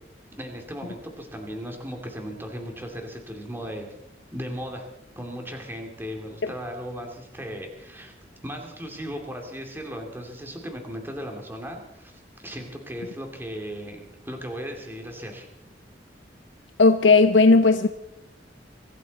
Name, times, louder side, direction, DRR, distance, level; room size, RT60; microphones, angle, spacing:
voice 1, 0.4-3.9 4.3-4.9 5.2-8.1 8.4-15.5, equal, 10° right, 2.5 m, -36 dB
voice 2, 16.8-17.9, left 3 dB, 90° left, 0.7 m, -16 dB
23.5 x 14.0 x 4.1 m
head